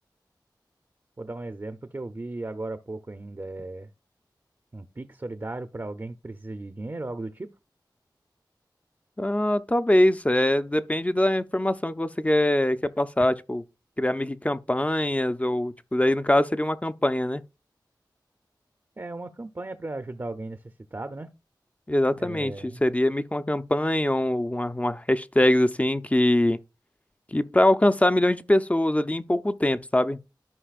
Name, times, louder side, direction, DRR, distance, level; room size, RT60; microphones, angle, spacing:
voice 1, 1.2-3.9 4.7-7.5 19.0-20.6 20.9-21.3 22.2-22.8, right 2 dB, 35° right, 0.6 m, -36 dB
voice 2, 9.2-13.6 14.0-17.4 21.9-26.6 27.3-30.2, left 1 dB, 20° left, 0.5 m, -23 dB
13.5 x 5.4 x 2.4 m
wide cardioid pair, 65°, 8 cm